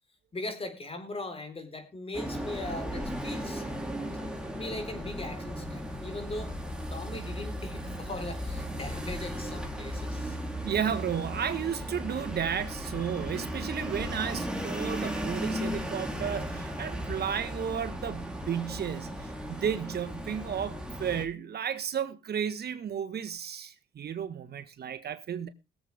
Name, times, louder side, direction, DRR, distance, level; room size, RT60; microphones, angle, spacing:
voice 1, 0.3-3.7 4.6-6.5 6.9-10.4, left 2 dB, 30° left, 4.2 m, -39 dB
sound 1, 2.1-21.2, equal, 5° right, 3.4 m, -36 dB
voice 2, 10.6-25.5, right 8 dB, 55° right, 1.4 m, -33 dB
21.5 x 7.9 x 3.5 m
cardioid pair, 90°, 20 cm